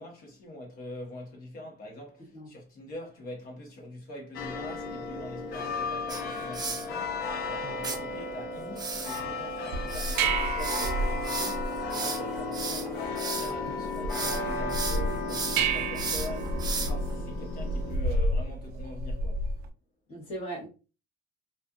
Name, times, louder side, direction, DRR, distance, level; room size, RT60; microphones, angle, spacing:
voice 1, 0.0-19.4, left 1 dB, 65° left, 1.1 m, -44 dB
sound 1, 4.3-18.0, left 3 dB, 85° left, 0.6 m, -34 dB
sound 2, 6.1-6.9 7.8-8.0 8.8-13.6 13.9-14.4 14.7-17.1, right 4 dB, 25° right, 0.5 m, -35 dB
sound 3, 9.7-19.7, right 2 dB, 75° right, 0.4 m, -31 dB
voice 2, 20.1-20.7, right 1 dB, 40° left, 1.2 m, -39 dB
2.5 x 2.4 x 2.3 m
cardioid pair, 115°, 16 cm